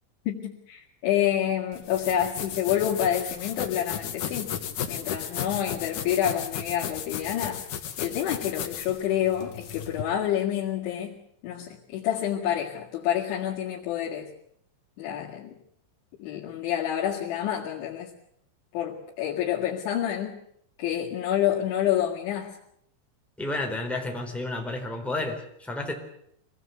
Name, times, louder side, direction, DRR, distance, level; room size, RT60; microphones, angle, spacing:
voice 1, 0.3-4.5 4.9-7.7 8.0-11.2 11.4-14.3 15.0-15.6 16.2-18.1 18.7-20.4 20.8-22.6, left 10 dB, 85° left, -5 dB, 4.4 m, -28 dB
sound 1, 1.7-10.0, left 9 dB, 60° left, 2.4 m, -35 dB
voice 2, 23.4-25.9, left 2 dB, ahead, 1 dB, 3.0 m, -31 dB
25.5 x 18.5 x 8.1 m, 0.72 s
omnidirectional pair, 5.2 m